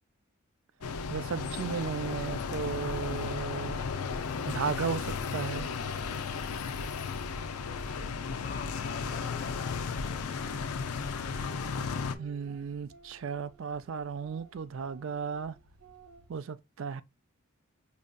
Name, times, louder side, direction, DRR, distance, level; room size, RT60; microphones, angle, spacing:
sound 1, 0.8-12.1, left 5 dB, 85° left, 0.5 m, -34 dB
sound 2, 0.8-16.4, right 1 dB, 90° right, 1.2 m, -57 dB
voice 1, 1.1-3.8 4.5-5.7 12.2-15.6 16.3-17.0, right 6 dB, 60° right, 0.4 m, -35 dB
voice 2, 8.4-10.7, left 5 dB, 40° left, 0.6 m, -47 dB
5.2 x 2.7 x 2.2 m
head